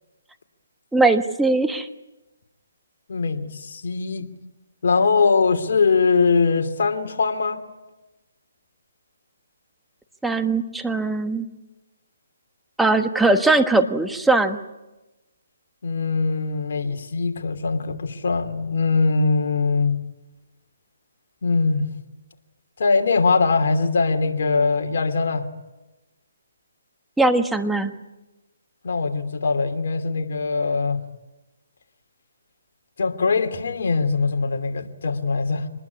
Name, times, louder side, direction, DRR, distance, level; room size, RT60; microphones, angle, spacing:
voice 1, 0.9-1.9 10.2-11.5 12.8-14.6 27.2-27.9, right 2 dB, 5° right, 7 dB, 1.3 m, -20 dB
voice 2, 3.1-4.3 4.8-7.6 15.8-20.0 21.4-21.9 22.8-25.5 28.8-31.0 33.0-35.7, left 4 dB, 60° left, 5 dB, 2.8 m, -21 dB
25.5 x 20.5 x 9.7 m, 1.1 s
hypercardioid pair, 150°, 0 cm